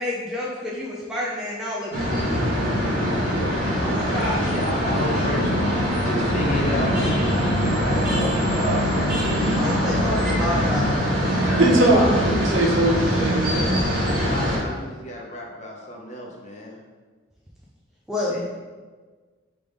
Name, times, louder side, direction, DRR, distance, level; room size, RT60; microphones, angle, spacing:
voice 1, 0.0-2.3 3.8-4.4 9.5-10.9 11.9-12.1 18.1-18.4, left 1 dB, 5° right, -6 dB, 0.4 m, -29 dB
sound 1, 1.9-14.6, equal, 45° right, 1.4 m, -23 dB
voice 2, 3.0-11.0 14.2-16.8 18.3-18.4, left 1 dB, 35° left, -1 dB, 0.6 m, -33 dB
voice 3, 11.6-13.8, right 1 dB, 65° right, -1 dB, 0.7 m, -20 dB
3.4 x 3.3 x 3.8 m, 1.4 s
head